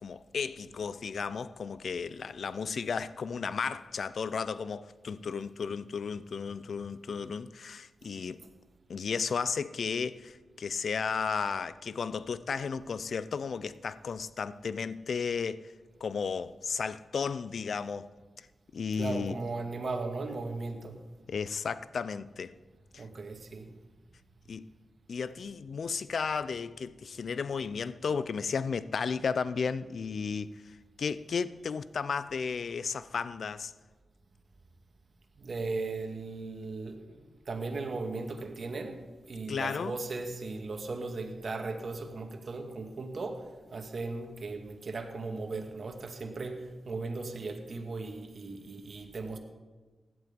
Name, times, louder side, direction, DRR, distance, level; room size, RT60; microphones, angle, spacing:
voice 1, 0.0-8.4 8.9-15.6 16.0-18.1 18.7-19.4 21.3-22.5 22.9-23.0 24.5-24.7 25.1-33.7 39.5-40.0, left 5 dB, 70° left, 0.6 m, -34 dB
voice 2, 19.0-21.0 23.0-23.7 35.4-43.4 43.7-49.4, right 3 dB, 60° right, 2.1 m, -37 dB
16.0 x 11.0 x 5.3 m
cardioid pair, 50°, 0 cm